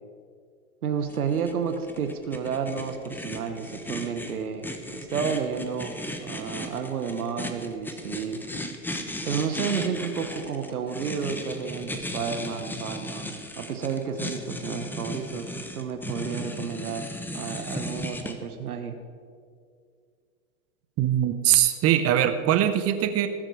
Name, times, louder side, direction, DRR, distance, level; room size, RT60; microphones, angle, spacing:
voice 1, 0.8-8.4 9.2-17.1 17.3-19.0, right 6 dB, 90° right, 7 dB, 1.2 m, -31 dB
sound 1, 1.1-18.3, left 1 dB, 5° left, 1.0 m, -36 dB
voice 2, 21.0-23.3, right 11 dB, 35° right, 10 dB, 0.9 m, -22 dB
19.0 x 7.6 x 4.9 m, 2.2 s
hypercardioid pair, 100°, 43 cm